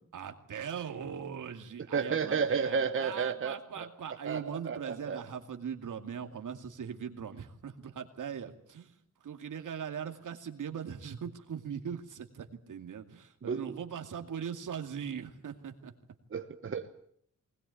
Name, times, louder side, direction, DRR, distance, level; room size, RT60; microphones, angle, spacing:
voice 1, 0.0-8.9 9.2-15.9, right 7 dB, 75° right, 5 dB, 2.4 m, -40 dB
voice 2, 1.9-3.9 4.2-5.2 13.4-13.7 16.3-16.9, right 6 dB, 40° right, 6 dB, 1.2 m, -32 dB
20.5 x 20.0 x 8.4 m, 0.65 s
wide cardioid pair, 120°, 32 cm